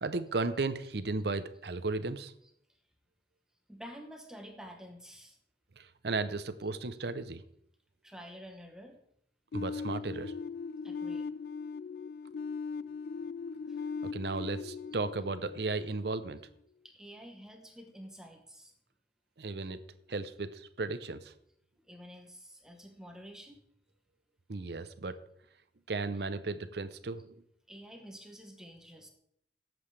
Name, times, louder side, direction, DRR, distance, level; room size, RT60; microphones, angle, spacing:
voice 1, 0.0-2.3 5.8-7.4 9.5-10.3 14.0-16.4 19.4-19.8 20.1-21.3 24.5-25.2 25.9-27.4, right 3 dB, 65° right, 12 dB, 0.7 m, -35 dB
voice 2, 2.4-2.8 3.7-5.4 6.3-6.7 8.0-9.0 10.8-11.3 13.7-13.8 16.8-18.7 21.9-23.6 27.7-29.1, equal, 5° right, 3 dB, 1.0 m, -50 dB
sound 1, 9.5-16.3, left 5 dB, 60° left, 0.3 m, -39 dB
18.0 x 7.8 x 3.3 m, 0.73 s
head